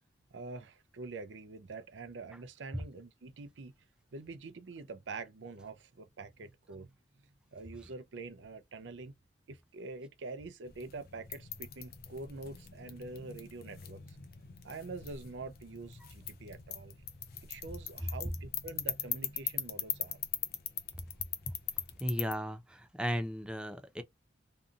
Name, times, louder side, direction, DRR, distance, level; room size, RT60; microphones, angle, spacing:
voice 1, 0.3-3.7 4.1-6.9 7.5-9.1 9.5-14.2 14.6-17.0 17.4-20.2, right 3 dB, 85° right, 0.5 m, -45 dB
sound 1, 10.6-22.3, left 10 dB, 60° left, 0.5 m, -41 dB
voice 2, 22.0-24.0, equal, 5° right, 0.4 m, -35 dB
2.7 x 2.5 x 2.4 m
head